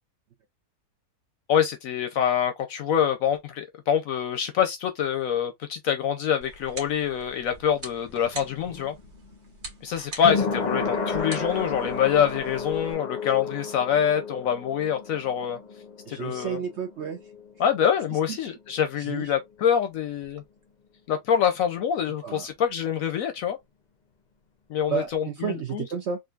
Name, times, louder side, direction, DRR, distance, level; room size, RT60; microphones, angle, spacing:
voice 1, 1.5-8.9 9.8-15.6 16.1-16.6 17.6-20.4 21.1-23.6 24.7-25.9, left 8 dB, 70° left, 0.9 m, -25 dB
sound 1, 6.4-12.9, right 2 dB, 45° right, 1.4 m, -44 dB
sound 2, 7.5-18.7 18.9-19.0, left 5 dB, 55° left, 0.5 m, -33 dB
voice 2, 16.1-17.3 18.1-18.4 19.0-19.3 22.2-22.5 24.9-26.2, right 7 dB, 70° right, 0.6 m, -32 dB
3.7 x 2.5 x 2.3 m
omnidirectional pair, 1.7 m